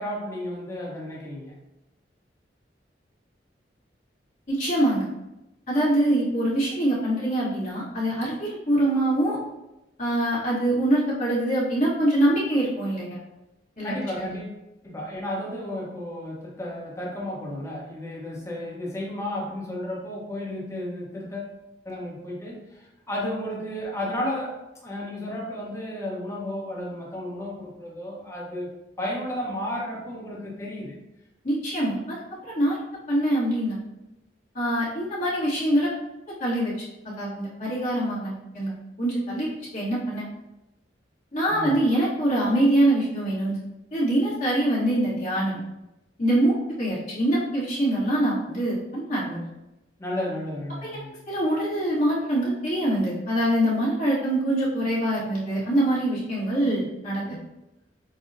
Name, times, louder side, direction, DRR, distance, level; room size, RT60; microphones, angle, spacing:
voice 1, 0.0-1.5 13.8-14.6 14.8-21.5 21.8-24.5 24.8-28.7 29.0-30.9 41.5-41.8 50.0-51.2, left 1 dB, 15° left, -5 dB, 0.9 m, -33 dB
voice 2, 4.5-5.1 5.7-9.4 10.0-13.2 13.8-14.4 31.4-32.2 32.4-32.8 33.1-33.8 34.5-35.9 36.4-36.7 37.2-38.7 39.0-40.3 41.3-43.6 43.9-45.6 46.2-49.4 50.8-57.4, right 1 dB, 45° left, -9 dB, 1.2 m, -24 dB
5.3 x 2.1 x 2.5 m, 0.93 s
head